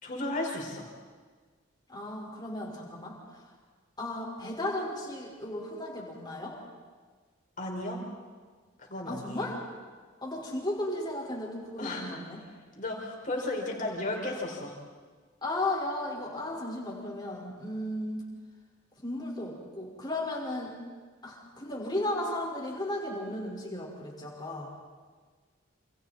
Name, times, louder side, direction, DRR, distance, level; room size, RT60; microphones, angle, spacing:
voice 1, 0.0-0.9 7.6-8.0 8.8-9.5 11.8-12.2 12.7-14.8, left 2 dB, 40° left, -1 dB, 5.4 m, -34 dB
voice 2, 1.9-3.2 4.0-6.6 9.1-9.6 10.2-12.4 15.4-18.2 19.0-20.8 21.2-24.7, left 1 dB, 20° left, -2 dB, 5.2 m, -35 dB
29.0 x 28.0 x 4.4 m, 1.5 s
head